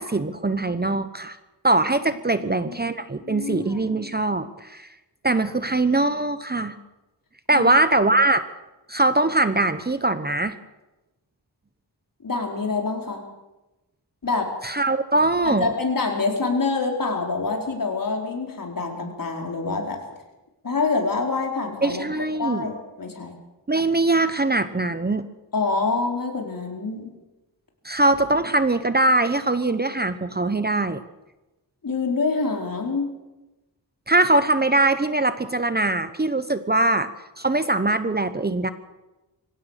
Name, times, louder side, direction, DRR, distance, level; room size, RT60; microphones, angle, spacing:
voice 1, 0.0-1.4 1.6-4.9 5.2-6.7 7.5-8.4 8.9-10.6 14.6-15.7 21.8-22.7 23.7-25.2 27.8-31.0 34.1-37.1 37.4-38.7, right 2 dB, 25° right, 11 dB, 1.0 m, -22 dB
voice 2, 2.4-2.7 3.2-3.9 7.5-7.7 12.2-13.2 14.2-14.5 15.4-20.0 20.6-23.3 25.5-27.1 31.8-33.1, left 4 dB, 50° left, 1 dB, 4.8 m, -26 dB
25.0 x 16.5 x 6.7 m, 1.0 s
wide cardioid pair, 105°, 41 cm